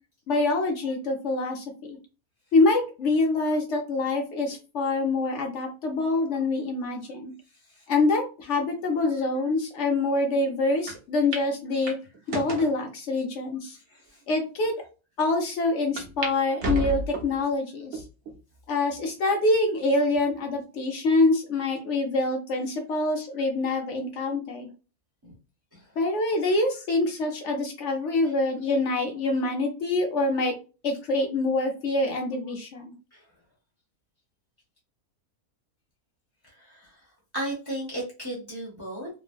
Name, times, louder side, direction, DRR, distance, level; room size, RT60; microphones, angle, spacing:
voice 1, 0.3-2.0 2.5-7.3 7.9-11.9 12.3-13.8 14.3-14.7 15.2-18.0 18.7-24.7 26.0-30.5 30.8-32.9, left 2 dB, 60° left, 3 dB, 1.0 m, -25 dB
voice 2, 7.5-7.8 14.1-14.2 25.2-25.3 25.7-26.0 28.2-28.3 33.1-33.3 36.4-37.1 37.3-39.1, right 1 dB, 20° right, -3 dB, 0.8 m, -36 dB
sound 1, 10.9-11.0 11.3-11.5 11.9-12.7 13.4-13.5 14.2-14.3 14.6-14.7 16.0-16.3 16.6-17.4 17.9-18.4 18.9-19.0 20.1-20.6, right 2 dB, 55° right, 1.0 m, -32 dB
3.2 x 2.1 x 2.4 m, 0.32 s
omnidirectional pair, 1.5 m